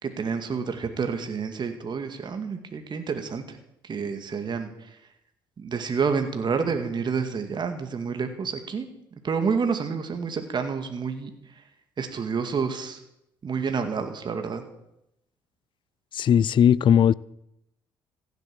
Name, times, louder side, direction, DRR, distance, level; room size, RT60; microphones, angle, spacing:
voice 1, 0.0-3.6 3.8-5.0 5.6-8.9 9.2-11.6 12.0-13.0 13.4-14.6, right 5 dB, 45° right, 2.2 m, -29 dB
voice 2, 16.1-17.1, left 9 dB, 50° left, 0.5 m, -18 dB
15.5 x 8.2 x 8.6 m
hypercardioid pair, 55°, 10 cm